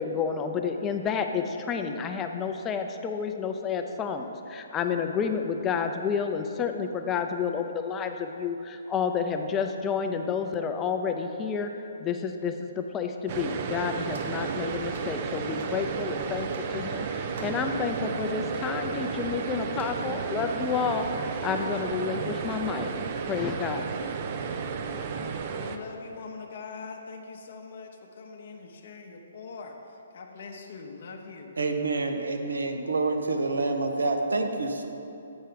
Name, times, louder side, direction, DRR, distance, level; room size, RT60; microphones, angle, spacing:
voice 1, 0.0-11.7 12.0-23.9, left 6 dB, 20° left, 6 dB, 0.4 m, -30 dB
sound 1, 13.3-25.8, right 5 dB, 40° right, 0.4 m, -32 dB
sound 2, 14.1-14.4 14.9-15.2 15.6-15.8 16.5-16.7 17.4-17.7 18.5-18.7 19.8-20.0, right 3 dB, 60° right, 0.9 m, -47 dB
voice 2, 25.5-31.5, left 4 dB, 60° left, 2 dB, 0.6 m, -42 dB
voice 3, 31.6-34.9, right 3 dB, 85° right, 5 dB, 0.7 m, -27 dB
8.0 x 4.5 x 5.1 m, 2.8 s
hypercardioid pair, 145°, 0 cm